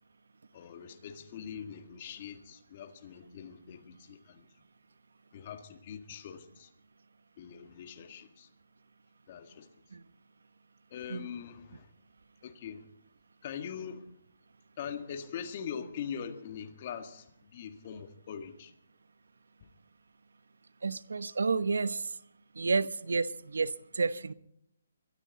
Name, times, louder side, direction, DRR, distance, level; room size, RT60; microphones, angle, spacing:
voice 1, 0.5-4.5 5.3-6.7 7.4-8.5 9.3-9.7 10.9-11.9 12.4-12.9 13.4-14.1 14.8-18.7, left 7 dB, 40° left, 1.9 m, -42 dB
voice 2, 20.8-22.1 22.5-24.3, right 4 dB, 80° right, 1.0 m, -30 dB
22.5 x 13.5 x 4.1 m
hypercardioid pair, 155°, 0 cm